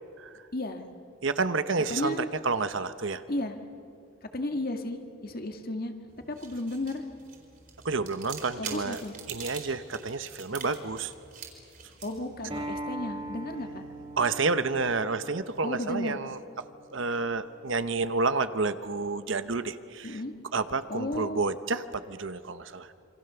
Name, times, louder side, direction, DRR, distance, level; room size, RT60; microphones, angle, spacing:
voice 1, 0.5-0.8 1.9-2.3 3.3-3.5 4.3-5.9 6.3-7.0 8.6-9.1 12.0-13.8 15.6-16.2 20.0-20.3 20.9-21.4, left 1 dB, 45° left, 6 dB, 1.9 m, -33 dB
voice 2, 1.2-3.2 7.8-9.0 9.3-11.1 14.2-16.4 16.9-20.2 20.5-22.9, right 4 dB, 65° right, 12 dB, 1.0 m, -30 dB
sound 1, 6.1-14.5, right 6 dB, 45° right, 4.4 m, -46 dB
Acoustic guitar, 12.5-17.7, right 1 dB, 25° right, 1.5 m, -41 dB
27.5 x 25.5 x 7.0 m, 2.5 s
head